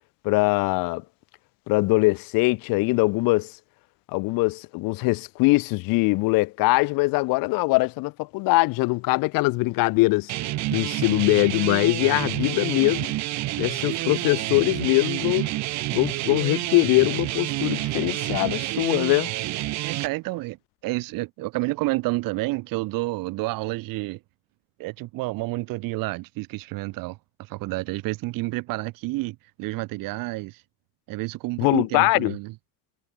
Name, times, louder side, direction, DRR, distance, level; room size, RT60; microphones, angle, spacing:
voice 1, 0.2-1.0 1.7-3.5 4.1-10.3 10.7-13.1 13.6-15.5 15.9-19.3 31.6-32.3, left 24 dB, 80° left, 0.5 m, -22 dB
sound 1, 10.3-20.1, right 17 dB, 55° right, 0.6 m, -29 dB
voice 2, 19.8-20.6 20.8-24.2 24.8-27.2 27.5-30.6 31.1-32.5, right 21 dB, 80° right, 0.8 m, -29 dB
cardioid pair, 160°, 33 cm